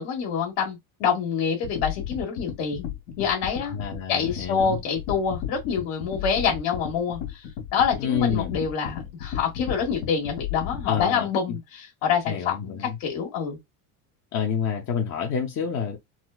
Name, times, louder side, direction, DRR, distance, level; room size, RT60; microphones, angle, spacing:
voice 1, 0.0-2.9 3.2-3.8 4.1-7.4 7.7-13.6, left 6 dB, 65° left, 1.6 m, -26 dB
sound 1, 1.6-11.1, left 9 dB, 85° left, 1.8 m, -34 dB
voice 2, 3.7-4.8 8.0-8.5 10.9-11.6 12.3-13.0 14.3-16.0, left 7 dB, 35° left, 0.7 m, -28 dB
4.2 x 2.3 x 2.4 m
supercardioid pair, 95°, 47 cm